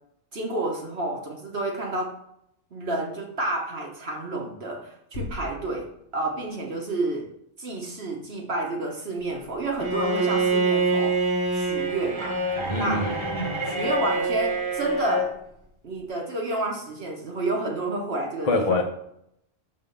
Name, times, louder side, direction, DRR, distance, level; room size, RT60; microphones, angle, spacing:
voice 1, 0.3-2.1 2.7-5.9 6.1-7.3 7.6-12.4 12.7-13.1 13.6-15.3 15.8-18.8, right 2 dB, 60° right, 1.2 m, -30 dB
sound 1, 5.1-7.1, left 2 dB, 85° left, 1.2 m, -40 dB
Bowed string instrument, 9.8-15.3, right 2 dB, 30° right, 0.7 m, -25 dB
voice 2, 12.7-13.5 18.4-18.8, left 3 dB, 35° left, 0.7 m, -25 dB
5.6 x 3.5 x 5.2 m
omnidirectional pair, 1.2 m